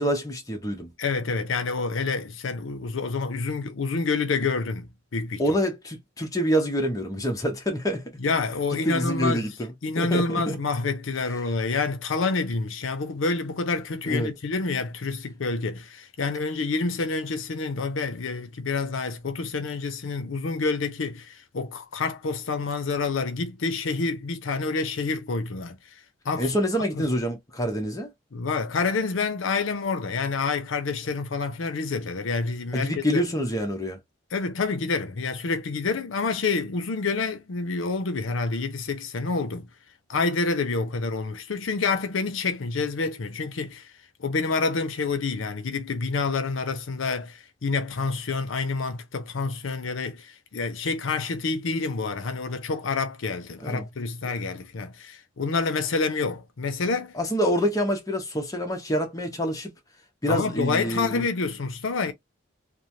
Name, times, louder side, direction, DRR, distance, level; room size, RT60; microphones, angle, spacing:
voice 1, 0.0-0.9 5.4-8.1 8.8-10.6 14.1-14.3 26.4-28.1 32.7-34.0 53.6-53.8 57.1-59.7 60.2-61.3, equal, 20° left, 0.8 m, -26 dB
voice 2, 1.0-5.4 8.2-9.4 9.8-25.8 26.2-26.5 27.0-27.1 28.3-33.2 34.3-39.7 40.1-43.9 44.2-57.2 60.3-62.1, left 4 dB, 85° left, 0.6 m, -28 dB
3.1 x 2.1 x 2.6 m
head